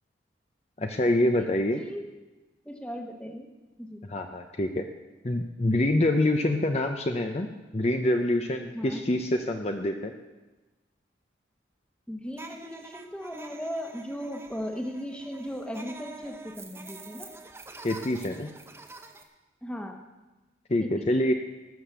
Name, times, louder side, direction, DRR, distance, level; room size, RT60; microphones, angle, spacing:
voice 1, 0.8-1.8 4.1-4.9 5.2-7.5 7.7-10.1 17.8-18.5 20.7-21.3, left 1 dB, 35° left, 5 dB, 0.7 m, -26 dB
voice 2, 1.8-2.1 2.6-3.5 3.8-4.0 8.7-9.0 12.1-17.3 19.6-20.0 20.8-21.0, equal, 5° left, 3 dB, 1.2 m, -37 dB
sound 1, 12.3-19.2, right 3 dB, 15° right, 0.9 m, -46 dB
19.0 x 6.7 x 6.8 m, 1.1 s
head